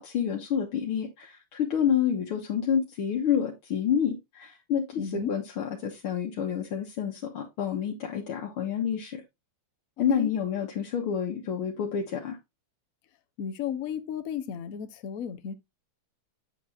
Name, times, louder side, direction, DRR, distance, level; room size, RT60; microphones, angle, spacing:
voice 1, 0.0-9.2 10.0-12.4, left 8 dB, 75° left, 2.1 m, -28 dB
voice 2, 5.0-5.3 10.0-10.3 13.4-15.5, left 8 dB, 55° left, 1.0 m, -34 dB
8.4 x 6.7 x 2.6 m
omnidirectional pair, 2.4 m